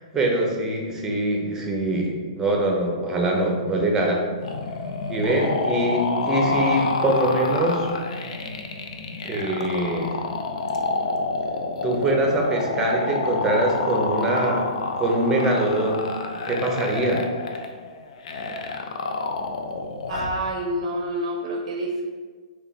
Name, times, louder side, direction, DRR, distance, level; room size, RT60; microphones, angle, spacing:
voice 1, 0.1-4.2 5.1-7.9 9.2-10.1 11.8-14.7 15.0-16.1 16.5-17.2, right 1 dB, 15° right, 0 dB, 0.7 m, -23 dB
sound 1, 4.4-20.4, left 3 dB, 70° left, 0.4 m, -28 dB
voice 2, 20.1-22.0, right 1 dB, 55° right, 1 dB, 0.5 m, -27 dB
3.2 x 2.3 x 3.9 m, 1.5 s
hypercardioid pair, 125°, 4 cm